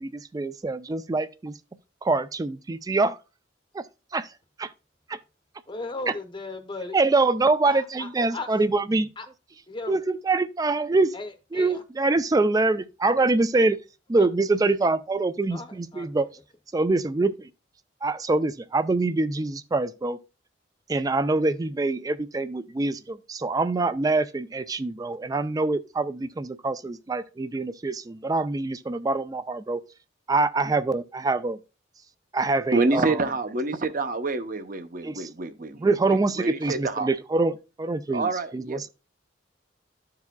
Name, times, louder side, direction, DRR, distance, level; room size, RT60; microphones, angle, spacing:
voice 1, 0.0-1.6 2.0-3.2 3.7-3.9 4.1-4.3 4.6-4.7 5.1-5.2 6.9-9.1 9.9-11.1 11.5-13.8 14.1-16.3 16.7-17.5 18.0-20.2 20.9-29.8 30.3-31.6 32.3-33.2 35.0-35.3 35.8-38.9, right 3 dB, 20° right, 0.3 m, -25 dB
voice 2, 5.7-7.0 7.7-8.5 9.2-9.3 9.7-10.0 11.1-11.8 14.2-14.3 15.5-16.1, left 3 dB, 25° left, 0.7 m, -36 dB
voice 3, 32.7-35.9 36.4-37.1 38.1-38.9, right 3 dB, 45° right, 0.7 m, -27 dB
12.5 x 4.8 x 2.2 m
head